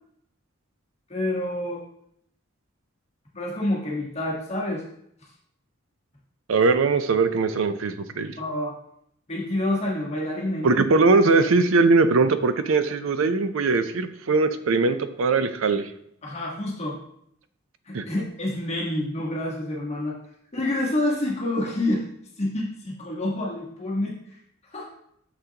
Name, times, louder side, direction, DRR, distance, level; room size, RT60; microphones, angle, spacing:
voice 1, 1.1-1.8 3.3-4.8 8.4-8.7 9.3-10.8 11.3-11.5 16.2-17.0 17.9-20.2 20.5-22.0 22.4-24.2 24.7-24.9, left 1 dB, 30° left, -4 dB, 1.4 m, -28 dB
voice 2, 6.5-8.4 10.6-15.9 17.9-18.0, right 3 dB, 85° right, 11 dB, 0.5 m, -21 dB
6.6 x 5.8 x 2.8 m, 0.72 s
head